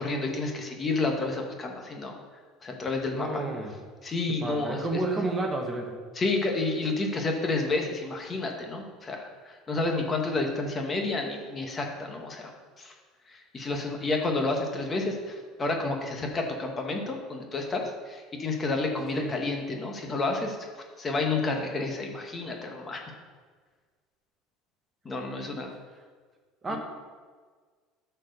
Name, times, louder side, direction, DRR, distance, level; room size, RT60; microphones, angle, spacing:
voice 1, 0.0-2.2 2.6-3.4 4.0-5.0 6.1-12.5 12.8-12.9 13.3-20.6 21.0-23.0 25.0-25.7 26.7-26.8, left 3 dB, 20° left, 2 dB, 1.1 m, -30 dB
voice 2, 3.1-3.7 4.3-5.9 19.2-19.3 26.6-26.8, right 2 dB, 20° right, 2 dB, 1.1 m, -31 dB
10.5 x 4.5 x 6.6 m, 1.5 s
cardioid pair, 150°, 0 cm